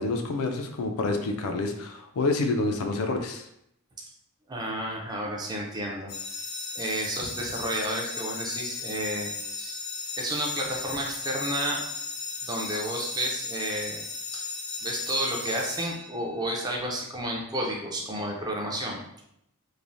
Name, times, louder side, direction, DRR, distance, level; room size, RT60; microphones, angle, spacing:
voice 1, 0.0-3.5, left 3 dB, 70° left, 4 dB, 0.4 m, -28 dB
voice 2, 4.5-6.1 6.8-9.8 10.2-11.8 12.4-14.0 14.3-14.4 14.8-19.0, right 1 dB, 20° right, -1 dB, 0.4 m, -31 dB
sound 1, 6.1-16.5, left 4 dB, 85° left, 0.8 m, -36 dB
3.1 x 2.0 x 2.5 m, 0.77 s
head